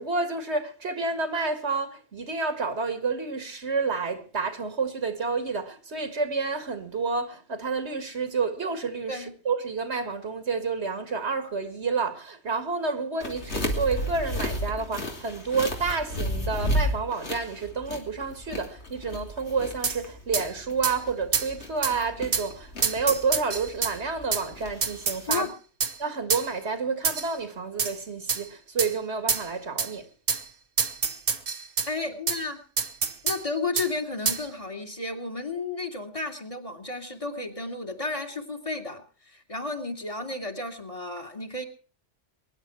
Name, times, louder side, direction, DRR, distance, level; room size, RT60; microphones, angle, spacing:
voice 1, 0.0-25.5 26.0-30.0, right 4 dB, 70° right, 2.2 m, -29 dB
sound 1, 13.2-25.4, equal, 75° left, 3.2 m, -33 dB
sound 2, 19.8-20.0 20.3-20.5 20.8-21.0 21.3-21.5 21.8-21.9 22.3-22.5 22.8-23.9 24.3-24.4 24.8-25.4 25.8-25.9 26.3-26.5 27.0-27.3 27.8-27.9 28.3-28.4 28.8-28.9 29.3-29.5 29.8-29.9 30.3-30.4 30.8-31.9 32.3-32.4 32.8-33.4 33.8-33.9 34.3-34.4, right 5 dB, 55° right, 1.3 m, -26 dB
voice 2, 31.9-32.6 33.2-41.6, left 3 dB, 30° left, 2.5 m, -32 dB
23.0 x 10.5 x 4.6 m
omnidirectional pair, 1.2 m